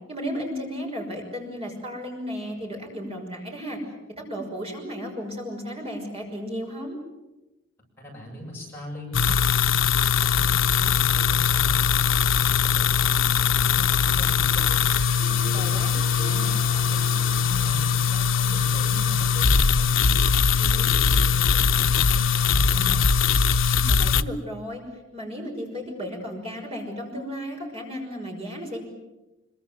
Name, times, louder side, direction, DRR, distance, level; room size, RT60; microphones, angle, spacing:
voice 1, 0.1-3.8 4.2-7.0 15.5-15.9 23.7-24.8 25.1-28.8, equal, 30° right, 1 dB, 5.9 m, -34 dB
voice 2, 8.0-14.7 15.0-20.1 20.5-23.1, equal, 10° left, -3 dB, 7.6 m, -40 dB
sound 1, 9.1-24.2, left 6 dB, 75° left, 0.8 m, -21 dB
sound 2, 10.0-23.5, left 1 dB, 50° left, 7.1 m, -47 dB
Harp, 14.5-20.0, equal, 65° right, 2.1 m, -43 dB
25.5 x 23.5 x 7.8 m, 1.0 s
head